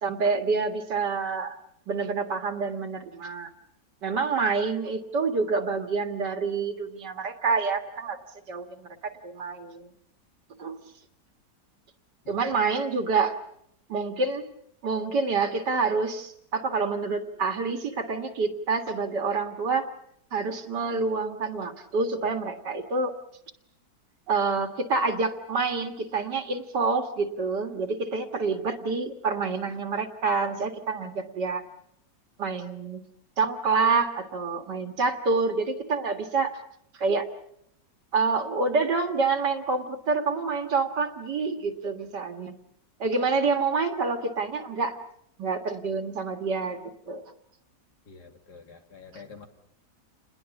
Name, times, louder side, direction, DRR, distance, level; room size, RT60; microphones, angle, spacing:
voice 1, 0.0-1.6 1.9-3.5 4.0-8.2 8.5-9.9 10.6-10.8 12.3-13.4 13.9-14.5 14.8-19.9 20.3-23.1 24.3-31.6 32.4-33.0 33.4-36.5 37.0-37.3 38.1-42.5 43.0-45.0 45.4-47.2 49.1-49.2, right 4 dB, 75° right, 7 dB, 2.5 m, -27 dB
voice 2, 48.1-49.5, left 5 dB, 70° left, 5 dB, 3.0 m, -47 dB
29.0 x 20.5 x 7.2 m, 0.73 s
omnidirectional pair, 1.8 m